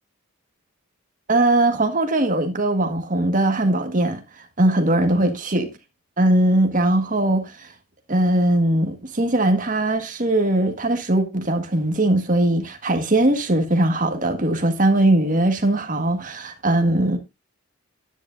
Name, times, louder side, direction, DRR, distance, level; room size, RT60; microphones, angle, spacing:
voice 1, 1.3-4.2 4.6-5.7 6.2-7.7 8.1-17.2, right 1 dB, 35° right, 1.6 m, -20 dB
11.0 x 9.8 x 2.6 m
head